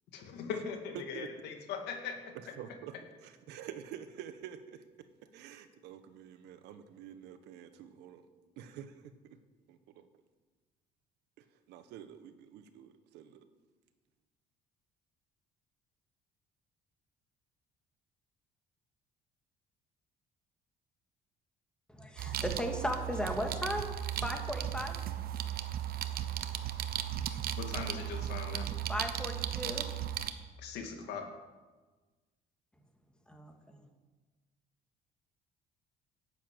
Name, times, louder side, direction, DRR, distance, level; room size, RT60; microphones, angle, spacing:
voice 1, 0.1-2.3 27.6-28.7 30.6-31.3, left 6 dB, 85° left, 4 dB, 2.2 m, -40 dB
voice 2, 0.9-1.3 2.6-2.9 3.2-4.8 5.3-8.2 8.6-9.4 9.7-10.1 11.4-13.4, right 9 dB, 90° right, 10 dB, 1.2 m, -48 dB
voice 3, 21.9-23.9 24.2-25.0 28.9-29.9 33.3-33.8, equal, 5° left, 4 dB, 2.1 m, -36 dB
sound 1, 22.2-30.3, right 11 dB, 60° right, 1.0 m, -36 dB
12.0 x 8.4 x 9.1 m, 1.3 s
cardioid pair, 110°, 17 cm